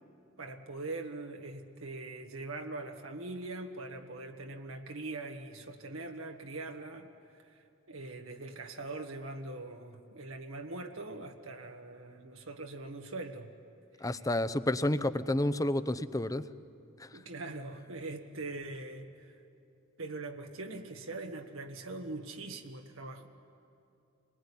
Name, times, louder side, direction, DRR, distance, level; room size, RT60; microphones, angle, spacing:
voice 1, 0.4-7.1 7.4-13.5 14.0-14.1 17.1-19.3 20.0-23.3, right 2 dB, 90° right, 4 dB, 1.5 m, -42 dB
voice 2, 14.0-16.4 17.0-17.1, left 1 dB, 15° left, 13 dB, 0.6 m, -30 dB
26.5 x 20.5 x 10.0 m, 2.8 s
head